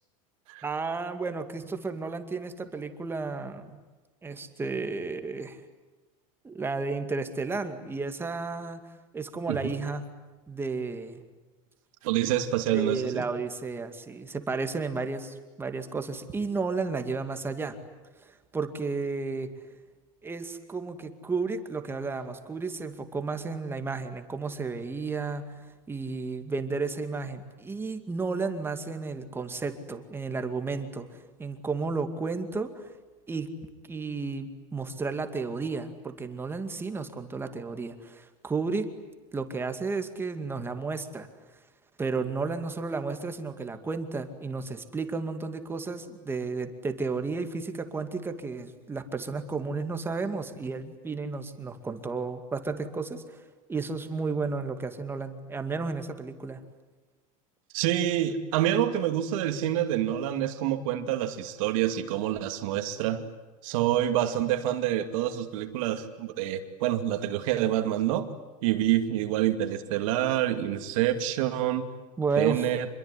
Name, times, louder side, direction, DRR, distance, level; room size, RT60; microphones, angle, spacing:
voice 1, 0.6-3.8 4.2-5.6 6.4-8.8 9.1-10.0 10.5-11.2 12.7-17.8 18.5-19.5 20.2-25.4 25.9-31.1 31.4-32.9 33.3-33.5 33.9-38.9 39.3-41.3 42.0-53.4 53.7-56.6 72.2-72.7, right 4 dB, 10° right, 8 dB, 2.3 m, -32 dB
voice 2, 12.0-13.2 57.7-63.2 63.6-68.3 68.6-71.9 72.4-72.9, right 12 dB, 70° right, 7 dB, 2.5 m, -27 dB
27.0 x 22.5 x 9.9 m, 1.2 s
supercardioid pair, 145°, 18 cm